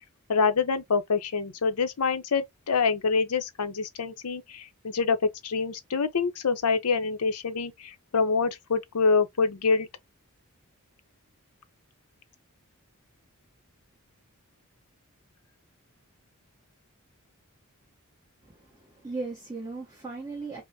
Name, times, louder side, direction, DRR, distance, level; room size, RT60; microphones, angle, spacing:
voice 1, 0.3-9.9, left 4 dB, 90° left, 0.7 m, -26 dB
voice 2, 18.4-20.6, right 3 dB, 15° right, 0.9 m, -37 dB
5.3 x 2.1 x 2.7 m
head